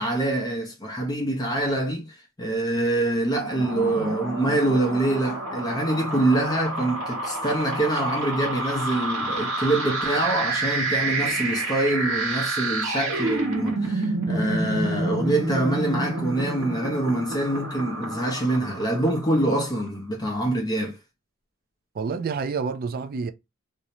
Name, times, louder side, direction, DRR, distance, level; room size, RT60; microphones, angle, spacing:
voice 1, 0.0-21.0, right 1 dB, 20° left, 0.6 m, -25 dB
sound 1, 3.3-19.6, right 2 dB, 85° right, 1.0 m, -29 dB
voice 2, 21.9-23.3, right 5 dB, 45° right, 0.3 m, -29 dB
2.5 x 2.1 x 2.8 m
head